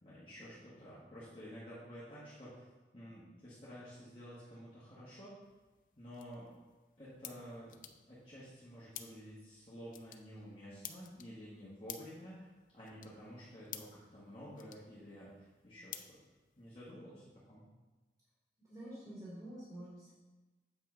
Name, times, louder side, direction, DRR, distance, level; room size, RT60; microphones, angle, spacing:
voice 1, 0.0-2.6 2.9-5.3 6.0-6.5 7.0-7.8 8.1-16.2 16.6-17.7, equal, 30° left, -10 dB, 1.5 m, -51 dB
sound 1, 5.4-16.9, left 10 dB, 50° left, 0.4 m, -54 dB
voice 2, 18.7-20.1, right 1 dB, 25° right, -11 dB, 2.7 m, -48 dB
8.0 x 5.5 x 3.9 m, 1.2 s
head